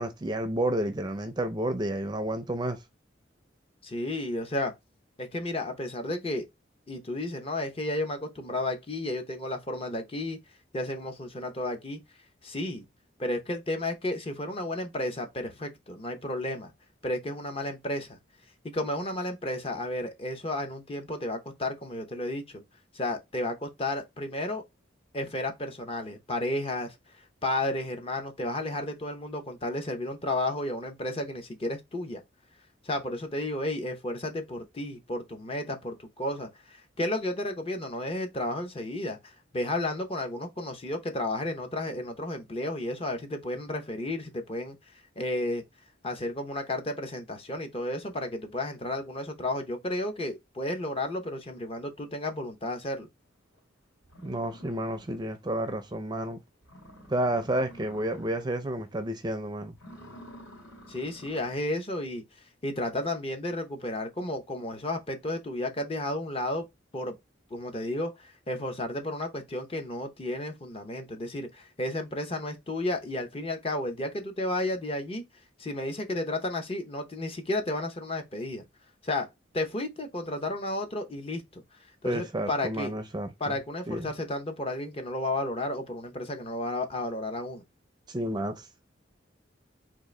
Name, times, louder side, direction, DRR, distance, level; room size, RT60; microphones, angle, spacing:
voice 1, 0.0-2.8 54.2-56.4 57.1-59.8 82.0-83.6 83.9-84.1 88.1-88.7, right 1 dB, 20° right, 0.4 m, -30 dB
voice 2, 3.8-4.7 5.2-6.5 6.9-10.4 10.7-12.0 12.4-12.9 13.2-16.7 17.0-18.2 18.7-22.6 22.9-24.6 25.1-26.9 27.4-32.2 32.8-44.8 45.2-45.6 46.0-53.1 60.9-62.2 62.6-66.7 66.9-67.1 67.5-75.2 75.6-78.6 79.0-79.3 79.5-81.6 82.0-82.9 83.4-87.6, left 1 dB, 30° left, 0.6 m, -32 dB
sound 1, 53.6-53.7 54.0-55.4 55.8-55.9 56.3-56.4 56.6-58.5 58.9-59.2 59.7-61.7, equal, 60° left, 2.4 m, -50 dB
3.6 x 2.5 x 3.1 m
head